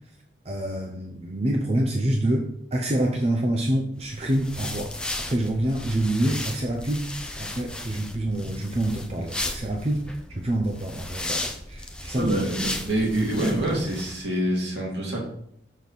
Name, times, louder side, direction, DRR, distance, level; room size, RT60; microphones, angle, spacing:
voice 1, 0.4-7.1 7.4-12.3, right 1 dB, 35° right, 1 dB, 0.7 m, -27 dB
sound 1, 4.0-14.2, left 1 dB, 5° left, 0.7 m, -35 dB
voice 2, 12.1-15.2, right 1 dB, 65° right, -2 dB, 2.7 m, -26 dB
6.9 x 6.4 x 4.1 m, 0.71 s
head